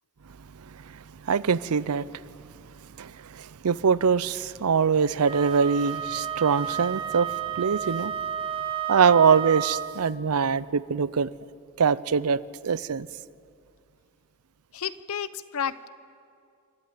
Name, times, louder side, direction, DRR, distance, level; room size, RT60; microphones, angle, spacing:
voice 1, 0.6-2.1 3.0-8.2 8.9-11.3 11.8-13.1, right 6 dB, 90° right, 18 dB, 0.5 m, -23 dB
Wind instrument woodwind instrument, 5.2-10.0, right 9 dB, 25° right, 1.2 m, -31 dB
voice 2, 14.7-15.9, left 8 dB, 75° left, 15 dB, 0.8 m, -31 dB
27.0 x 13.5 x 9.3 m, 2.4 s
head